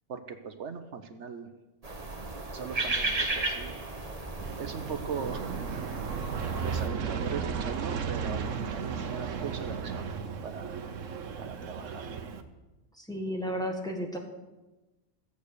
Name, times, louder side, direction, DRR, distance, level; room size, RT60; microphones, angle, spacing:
voice 1, 0.1-1.5 2.5-3.7 4.6-5.4 6.6-10.2 10.4-10.8 11.4-12.2, right 6 dB, 70° right, 8 dB, 1.2 m, -39 dB
sound 1, 1.8-6.9, right 2 dB, 30° right, 1.5 m, -34 dB
Aircraft, 4.4-12.4, right 6 dB, 90° right, 1.3 m, -35 dB
voice 2, 13.0-14.2, equal, 5° left, 1 dB, 1.7 m, -33 dB
15.0 x 8.2 x 6.7 m, 1.1 s
omnidirectional pair, 1.3 m